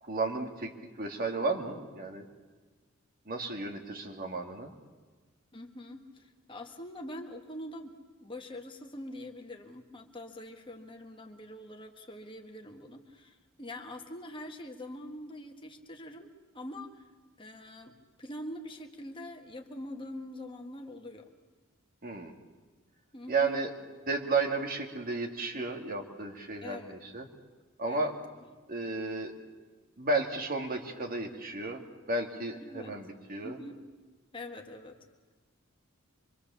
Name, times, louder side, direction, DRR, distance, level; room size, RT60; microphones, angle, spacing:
voice 1, 0.0-2.2 3.3-4.7 22.0-22.3 23.3-23.7 24.1-27.3 27.8-28.2 28.7-29.3 30.0-31.8 32.1-33.6, right 3 dB, 45° right, 3 dB, 2.4 m, -33 dB
voice 2, 5.5-17.0 17.4-21.3 23.1-23.6 26.6-27.0 27.9-28.1 32.6-32.9 33.4-33.8 34.3-35.0, left 1 dB, 25° left, 4 dB, 1.7 m, -44 dB
25.5 x 24.0 x 7.1 m, 1.4 s
head